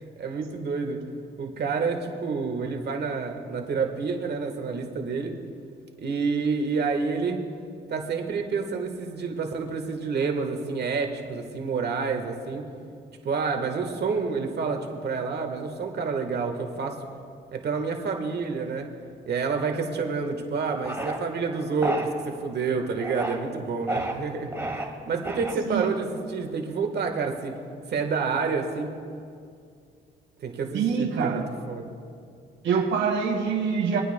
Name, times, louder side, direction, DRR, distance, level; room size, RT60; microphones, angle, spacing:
voice 1, 0.2-1.0 1.4-5.3 6.0-7.4 7.9-12.7 13.2-17.0 17.5-18.9 19.3-24.6 25.1-27.6 27.9-29.0 30.4-31.4 31.7-31.9, right 5 dB, 55° right, 4 dB, 1.4 m, -28 dB
sound 1, 20.8-21.2 21.8-22.1 22.9-23.4 23.9-24.1 24.5-24.8 25.2-25.7, right 1 dB, 15° right, 1.6 m, -30 dB
voice 2, 30.7-31.5 32.6-34.0, right 6 dB, 70° right, 0 dB, 1.8 m, -25 dB
26.0 x 9.2 x 2.2 m, 2.3 s
cardioid pair, 90°, 20 cm